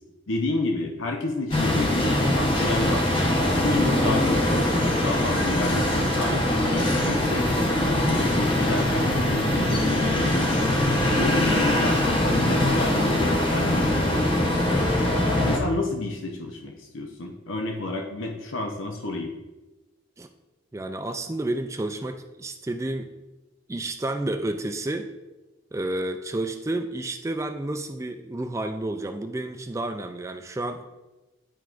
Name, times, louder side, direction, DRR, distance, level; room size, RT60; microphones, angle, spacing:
voice 1, 0.3-3.1 3.6-10.7 11.2-14.9 15.4-19.3, left 2 dB, 90° left, 2 dB, 0.7 m, -30 dB
sound 1, 1.5-15.6, left 1 dB, 25° left, 0.9 m, -22 dB
voice 2, 20.7-23.1 23.7-25.1 25.7-30.8, right 2 dB, 15° right, 7 dB, 0.3 m, -30 dB
10.0 x 4.5 x 2.5 m, 1.1 s
head